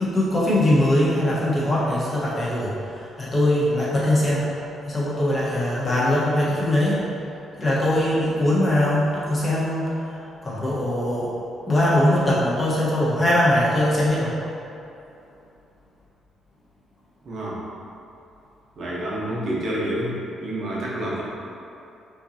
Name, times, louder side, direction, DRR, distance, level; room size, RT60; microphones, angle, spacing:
voice 1, 0.0-4.5 4.8-7.0 7.6-11.3 11.7-14.3, left 1 dB, 30° left, -8 dB, 1.3 m, -21 dB
voice 2, 17.2-17.6 18.8-21.2, right 1 dB, 60° right, -6 dB, 1.1 m, -28 dB
5.6 x 2.9 x 2.9 m, 2.7 s
cardioid pair, 90°, 0 cm